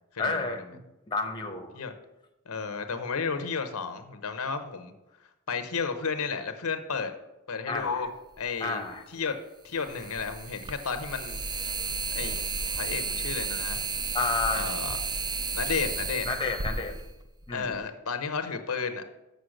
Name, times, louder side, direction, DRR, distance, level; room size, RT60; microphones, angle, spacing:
voice 1, 0.2-0.8 1.1-1.7 7.7-7.9 8.6-9.0 14.1-14.7 16.2-16.9 17.5-17.7, left 4 dB, 20° left, 4 dB, 0.9 m, -30 dB
voice 2, 2.5-4.9 5.5-7.1 7.5-8.1 8.4-8.8 9.1-9.4 9.6-11.7 12.1-12.4 12.7-13.8 14.5-15.0 15.5-16.3 17.5-19.0, left 5 dB, 70° left, 9 dB, 0.8 m, -32 dB
sound 1, 8.4-8.5 9.8-17.8, right 4 dB, 20° right, 0.5 m, -33 dB
6.7 x 6.3 x 6.4 m, 0.95 s
head